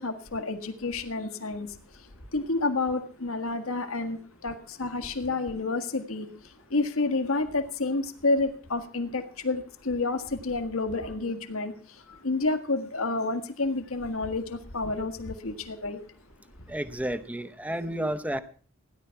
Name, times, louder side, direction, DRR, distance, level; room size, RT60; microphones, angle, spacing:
voice 1, 0.0-1.7 2.3-6.3 6.7-11.7 12.1-16.0, left 3 dB, 75° left, 7 dB, 1.7 m, -29 dB
voice 2, 16.7-18.4, right 1 dB, 5° right, 11 dB, 0.8 m, -31 dB
16.5 x 11.0 x 5.7 m, 0.42 s
head